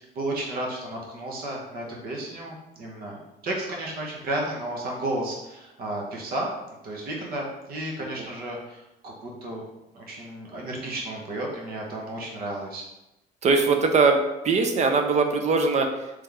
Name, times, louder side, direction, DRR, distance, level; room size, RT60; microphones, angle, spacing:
voice 1, 0.1-9.6 9.9-12.8, right 1 dB, 65° right, -2 dB, 1.2 m, -33 dB
voice 2, 13.4-16.2, right 4 dB, 40° right, 5 dB, 0.5 m, -22 dB
3.5 x 3.3 x 3.5 m, 0.93 s
cardioid pair, 110°, 17 cm